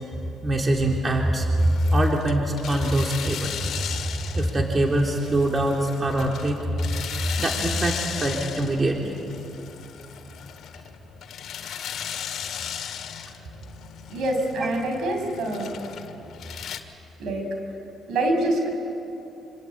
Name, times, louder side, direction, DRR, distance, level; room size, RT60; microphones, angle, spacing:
voice 1, 0.4-6.9 7.3-9.2 14.6-14.7, right 1 dB, 35° right, 1 dB, 3.3 m, -24 dB
sound 1, 1.6-16.8, left 8 dB, 70° left, 1.8 m, -36 dB
voice 2, 14.1-15.7 17.2-17.5 18.1-18.7, right 1 dB, 75° right, 3 dB, 5.8 m, -25 dB
26.0 x 25.5 x 8.6 m, 2.9 s
supercardioid pair, 70°, 0 cm